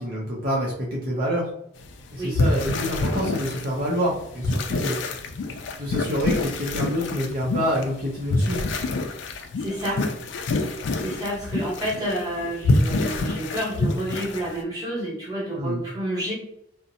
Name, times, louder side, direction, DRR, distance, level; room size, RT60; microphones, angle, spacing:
voice 1, 0.0-1.5 2.1-5.0 5.8-8.6 15.5-15.8, equal, 55° right, -4 dB, 0.5 m, -27 dB
sound 1, 1.8-1.9 2.2-14.6, left 2 dB, 80° left, 0.3 m, -26 dB
voice 2, 9.6-10.1 11.0-16.3, right 1 dB, 20° right, -4 dB, 1.0 m, -29 dB
2.6 x 2.1 x 2.7 m, 0.74 s
head